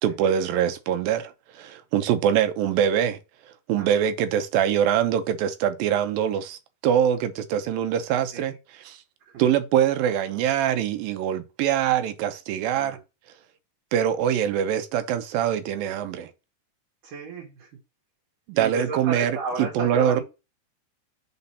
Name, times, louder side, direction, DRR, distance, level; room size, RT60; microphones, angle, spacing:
voice 1, 0.0-3.2 3.7-9.0 9.4-13.0 13.9-16.3 18.5-20.2, right 9 dB, 90° right, 2.7 m, -24 dB
voice 2, 17.0-17.7 18.5-20.2, right 4 dB, 70° right, 3.1 m, -34 dB
5.7 x 4.4 x 5.5 m
omnidirectional pair, 4.0 m